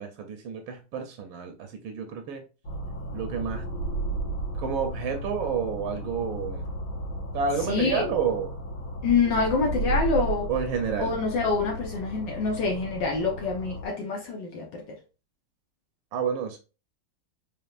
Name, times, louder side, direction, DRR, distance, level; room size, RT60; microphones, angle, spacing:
voice 1, 0.0-2.4 3.1-3.6 4.6-6.6 7.3-8.6 10.5-11.1 16.1-16.6, right 6 dB, 80° right, 5 dB, 1.4 m, -30 dB
sound 1, 2.6-13.9, right 2 dB, 80° left, 2.0 m, -34 dB
voice 2, 7.7-8.1 9.0-10.5 11.0-14.8, left 4 dB, 65° left, 0 dB, 1.4 m, -26 dB
4.3 x 3.4 x 2.3 m, 0.32 s
omnidirectional pair, 2.2 m